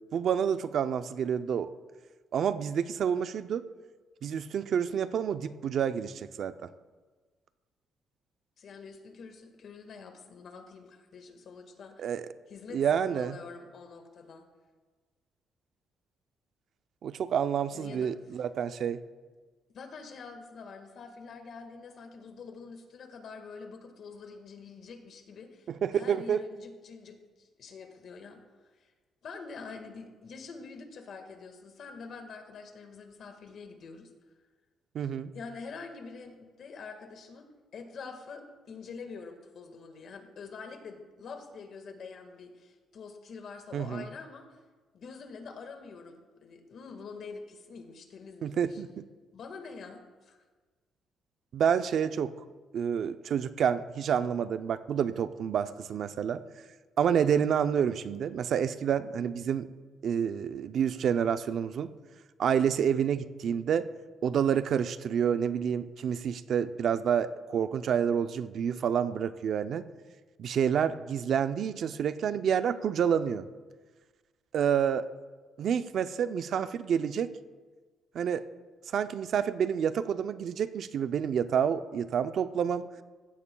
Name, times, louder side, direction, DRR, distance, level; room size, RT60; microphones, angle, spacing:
voice 1, 0.1-1.7 2.3-3.6 4.2-6.7 12.0-12.3 12.7-13.4 17.0-19.0 25.8-26.4 34.9-35.3 43.7-44.0 48.4-49.0 51.5-52.3 52.7-56.4 57.0-59.7 60.0-61.9 62.4-63.9 64.2-69.8 70.4-73.4 74.5-75.1 75.6-77.3 78.1-78.4 78.9-82.9, right 8 dB, 65° right, 12 dB, 0.5 m, -28 dB
voice 2, 8.6-12.1 12.5-14.4 17.7-18.4 19.7-28.4 28.8-28.9 29.2-34.1 35.3-44.6 44.9-48.8 49.3-50.4, left 4 dB, 60° left, 5 dB, 1.6 m, -46 dB
15.5 x 14.0 x 2.3 m, 1.4 s
cardioid pair, 90°, 0 cm